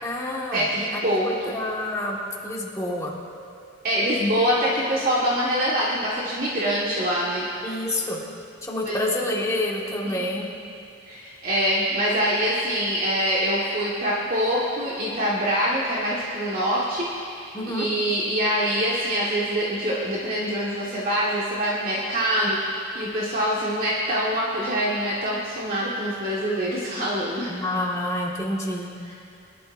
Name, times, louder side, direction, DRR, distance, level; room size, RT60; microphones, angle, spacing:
voice 1, 0.0-0.7 0.9-2.2 2.4-3.1 7.6-8.2 8.6-10.5 17.5-17.9 27.5-28.9, left 1 dB, 15° left, -3 dB, 1.7 m, -28 dB
voice 2, 0.5-1.5 3.8-7.4 8.8-9.0 10.1-10.2 11.1-27.5, equal, 50° right, -7 dB, 1.6 m, -25 dB
22.5 x 12.0 x 2.6 m, 2.4 s
head